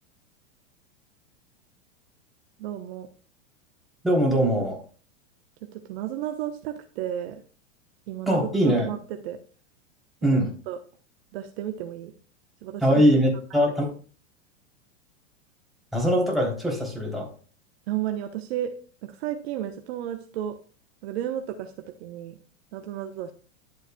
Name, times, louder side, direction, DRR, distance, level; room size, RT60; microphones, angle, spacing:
voice 1, 2.6-3.1 5.7-7.4 8.1-9.4 10.7-10.8 11.3-12.1 12.6-13.0 13.5-13.6 17.9-18.7 19.0-20.6 21.0-22.4 22.7-23.3, right 11 dB, 55° right, 6 dB, 1.1 m, -33 dB
voice 2, 4.0-4.8 8.3-8.9 10.2-10.5 12.8-13.9 15.9-17.3, equal, ahead, -3 dB, 3.3 m, -22 dB
11.0 x 8.1 x 2.3 m, 0.39 s
hypercardioid pair, 110°, 38 cm